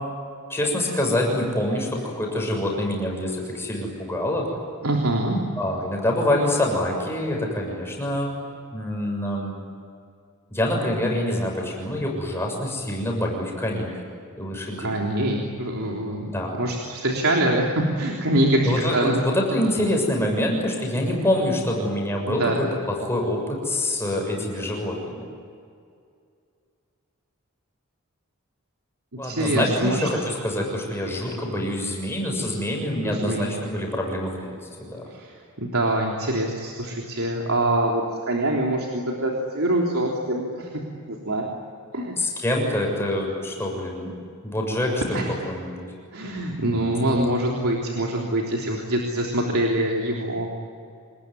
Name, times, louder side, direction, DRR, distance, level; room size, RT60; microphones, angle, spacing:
voice 1, 0.5-4.5 5.6-8.3 8.7-9.6 10.5-13.9 14.4-14.9 16.3-16.6 18.6-25.2 29.2-35.0 42.2-44.1 44.4-45.9 46.7-47.3, left 1 dB, 10° left, 0 dB, 6.9 m, -26 dB
voice 2, 4.8-5.4 14.8-19.2 22.3-22.6 29.2-30.1 33.0-33.4 35.1-35.3 35.6-40.7 41.1-41.4 41.9-42.1 45.1-45.2 46.1-50.5, right 1 dB, 75° right, -1 dB, 3.4 m, -24 dB
27.0 x 21.0 x 9.8 m, 2.3 s
head